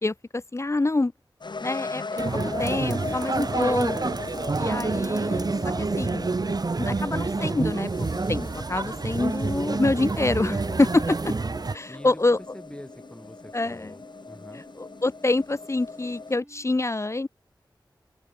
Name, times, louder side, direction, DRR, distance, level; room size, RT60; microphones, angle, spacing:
voice 1, 0.0-1.1 1.6-2.2 2.6-4.1 4.6-6.3 6.8-11.3 11.7-12.4 13.5-13.9 14.5-17.3, left 2 dB, 35° left, 1.1 m, -26 dB
sound 1, 1.4-16.4, left 4 dB, 65° left, 5.1 m, -39 dB
sound 2, 2.2-11.8, right 3 dB, 50° right, 1.4 m, -28 dB
sound 3, 6.5-16.7, right 1 dB, 15° right, 7.9 m, -54 dB
voice 2, 11.9-12.2 12.5-14.6, left 1 dB, 10° left, 6.9 m, -45 dB
open air
wide cardioid pair, 65°, 8 cm